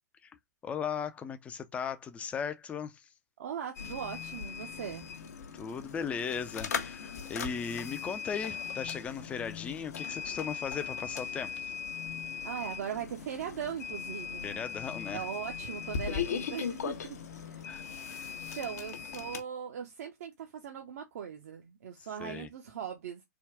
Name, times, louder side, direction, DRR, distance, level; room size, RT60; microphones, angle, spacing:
voice 1, 0.6-3.0 5.5-11.6 14.4-15.2 17.7-17.8 22.2-22.5, left 7 dB, 15° left, 0.4 m, -37 dB
voice 2, 3.4-5.0 12.4-14.6 15.1-17.8 18.5-23.2, right 8 dB, 55° right, 0.6 m, -39 dB
sound 1, 3.8-19.4, left 7 dB, 60° left, 0.6 m, -39 dB
3.5 x 2.2 x 3.4 m
figure-of-eight pair, 115°, 10 cm